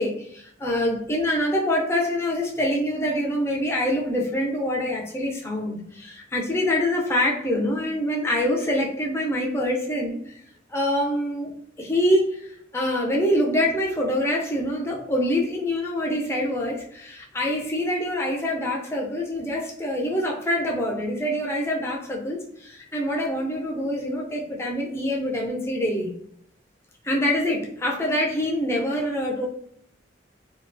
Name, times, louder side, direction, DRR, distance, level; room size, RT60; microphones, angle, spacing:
voice 1, 0.0-10.2 10.7-26.1 27.0-29.5, left 1 dB, 15° left, -1 dB, 0.4 m, -25 dB
2.3 x 2.1 x 2.5 m, 0.69 s
head